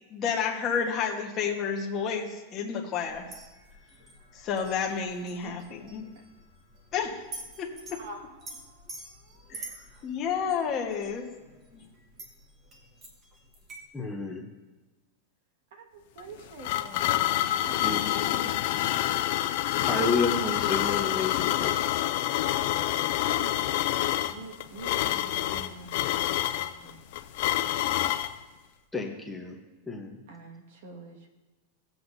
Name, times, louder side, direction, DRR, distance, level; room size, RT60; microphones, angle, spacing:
voice 1, 0.1-3.3 4.3-6.1 6.9-7.2 7.6-7.7 9.5-9.7 10.0-11.3, left 6 dB, 25° left, 0 dB, 1.2 m, -30 dB
sound 1, 3.0-13.9, right 2 dB, 20° right, 1.2 m, -48 dB
voice 2, 7.9-9.5 15.7-17.2 17.6-18.6 22.9-27.0 30.3-31.3, right 3 dB, 60° right, 3 dB, 1.6 m, -46 dB
voice 3, 13.9-14.4 17.8-18.0 19.8-21.8 28.9-29.6 29.9-30.2, left 3 dB, 5° left, 0 dB, 0.8 m, -30 dB
sound 2, 16.2-28.3, left 14 dB, 50° left, 0.4 m, -27 dB
17.5 x 7.8 x 2.7 m, 1.2 s
supercardioid pair, 170°, 0 cm